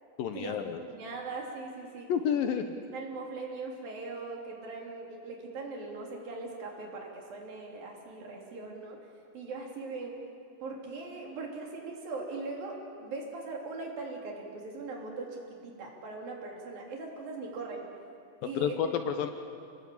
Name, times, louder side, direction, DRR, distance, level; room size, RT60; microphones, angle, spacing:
voice 1, 0.2-0.8 2.1-2.6 18.6-19.3, left 8 dB, 70° left, 7 dB, 2.5 m, -29 dB
voice 2, 0.9-2.1 2.5-2.6 2.9-9.0 9.3-10.2 10.6-17.9 18.4-18.9, right 3 dB, 60° right, 0 dB, 4.9 m, -40 dB
27.5 x 19.5 x 8.6 m, 2.3 s
omnidirectional pair, 4.7 m